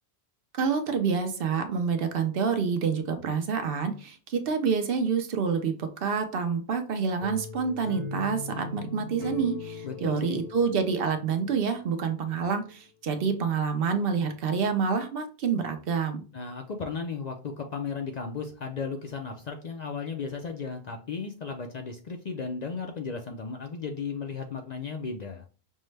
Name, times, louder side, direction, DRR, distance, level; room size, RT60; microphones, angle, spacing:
voice 1, 0.5-16.2, right 5 dB, 65° right, 6 dB, 0.8 m, -27 dB
sound 1, 7.2-12.1, left 4 dB, 70° left, 1.1 m, -39 dB
voice 2, 9.8-10.4 16.3-25.4, left 5 dB, 55° left, 4 dB, 0.5 m, -35 dB
5.4 x 2.1 x 3.2 m, 0.37 s
omnidirectional pair, 1.1 m